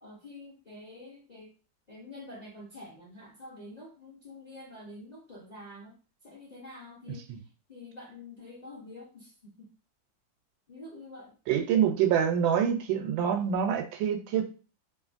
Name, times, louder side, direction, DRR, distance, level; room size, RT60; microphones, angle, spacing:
voice 1, 0.0-1.5 1.9-5.9 6.2-7.3 7.7-9.7 10.7-11.3, left 2 dB, 40° left, -6 dB, 0.5 m, -47 dB
voice 2, 7.1-7.4 11.5-14.4, right 8 dB, 90° right, 6 dB, 1.3 m, -26 dB
3.1 x 2.5 x 2.4 m, 0.35 s
omnidirectional pair, 2.0 m